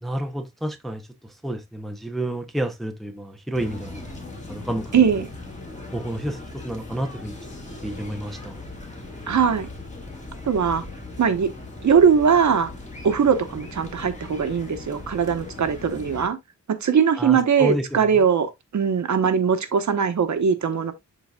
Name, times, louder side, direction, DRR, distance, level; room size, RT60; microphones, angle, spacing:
voice 1, 0.0-4.0 4.5-5.2 5.9-7.4 7.8-8.7 17.2-18.2, right 1 dB, ahead, 0.6 m, -30 dB
sound 1, 3.5-16.3, left 2 dB, 25° left, 2.1 m, -39 dB
voice 2, 4.9-5.3 9.3-9.7 10.4-10.8 11.2-11.5 11.8-12.7 13.0-16.4 16.8-20.9, right 7 dB, 70° right, 1.1 m, -20 dB
11.5 x 4.0 x 2.3 m
wide cardioid pair, 180°, 30 cm